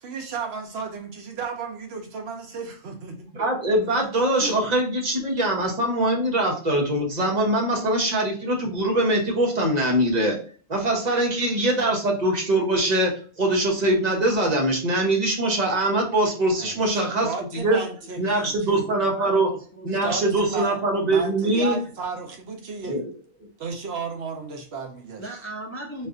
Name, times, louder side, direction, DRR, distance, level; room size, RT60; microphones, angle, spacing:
voice 1, 0.0-3.3 4.4-4.5 16.6-18.9 20.0-20.8 21.1-23.0 23.6-25.2, right 5 dB, 70° right, 2 dB, 1.0 m, -34 dB
voice 2, 3.3-10.4 10.7-13.1 13.4-17.3 17.5-17.8 18.2-19.5 19.8-21.8 22.9-23.0, right 1 dB, 40° right, 0 dB, 0.9 m, -22 dB
voice 3, 18.9-19.9 25.2-26.1, right 1 dB, 25° left, -1 dB, 0.3 m, -37 dB
4.1 x 2.5 x 2.4 m, 0.41 s
omnidirectional pair, 1.1 m